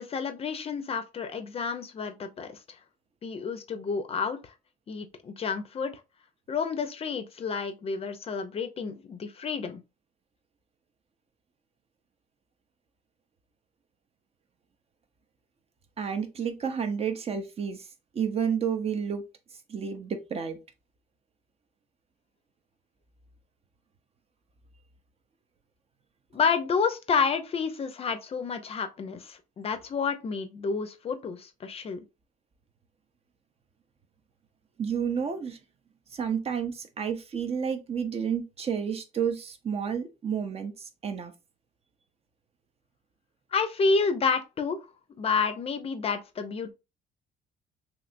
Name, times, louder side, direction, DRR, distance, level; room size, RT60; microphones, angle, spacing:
voice 1, 0.0-2.5 3.2-4.5 4.9-5.9 6.5-9.8 26.3-32.0 43.5-44.8 45.2-46.7, left 5 dB, 35° left, 0.5 m, -29 dB
voice 2, 16.0-17.9 18.1-19.2 19.7-20.6 34.8-35.6 36.1-41.3, right 7 dB, 35° right, 0.5 m, -30 dB
3.2 x 2.8 x 2.5 m
cardioid pair, 110°, 17 cm